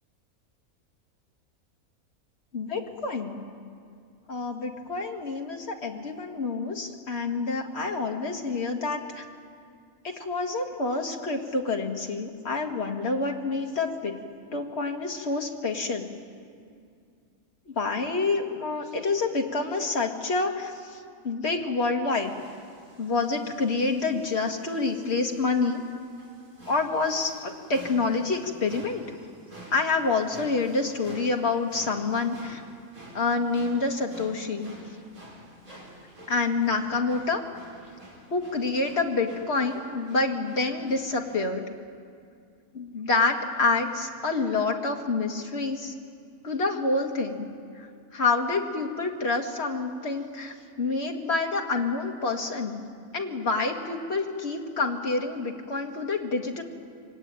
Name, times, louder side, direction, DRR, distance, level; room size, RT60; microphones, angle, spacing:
voice 1, 2.5-3.4 4.3-9.2 10.0-14.2 14.5-16.1 17.7-22.3 23.0-25.8 26.7-29.0 29.7-32.6 33.1-34.7 36.3-37.4 38.3-41.6 42.7-45.9 46.4-47.5 47.7-52.8 53.1-56.6, left 3 dB, 45° left, 2 dB, 2.2 m, -27 dB
sound 1, 22.1-41.5, equal, 75° right, 5.0 m, -50 dB
24.0 x 18.5 x 9.2 m, 2.3 s
omnidirectional pair, 1.5 m